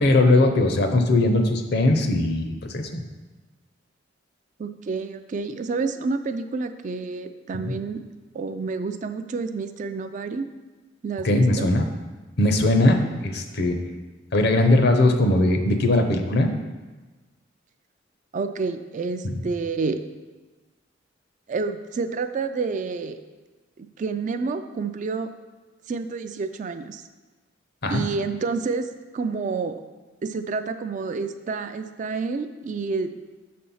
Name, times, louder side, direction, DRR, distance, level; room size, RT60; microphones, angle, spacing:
voice 1, 0.0-3.0 7.6-7.7 11.2-11.8 12.4-13.8 14.3-16.5 19.2-19.4 27.8-28.1, left 2 dB, 55° left, 6 dB, 0.7 m, -20 dB
voice 2, 4.6-8.0 8.3-10.5 11.0-11.7 18.3-20.0 21.5-23.2 23.8-25.3 25.9-27.0 27.9-29.8 30.2-33.2, right 4 dB, 40° right, 9 dB, 0.3 m, -29 dB
6.2 x 4.3 x 5.5 m, 1.3 s
head